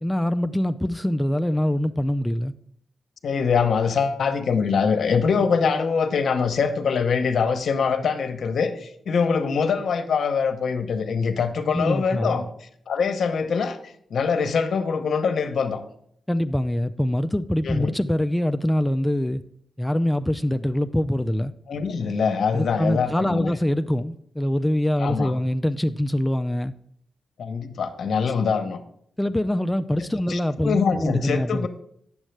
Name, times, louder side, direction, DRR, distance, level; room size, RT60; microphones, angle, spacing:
voice 1, 0.0-2.5 11.7-12.5 16.3-19.4 19.8-21.5 22.5-26.7 29.2-31.7, left 1 dB, 10° left, 0.3 m, -24 dB
voice 2, 3.2-15.8 17.6-17.9 21.7-23.5 25.0-25.3 27.4-28.8 30.3-31.7, left 5 dB, 70° left, 0.8 m, -23 dB
8.9 x 7.2 x 3.3 m
cardioid pair, 70°, 0 cm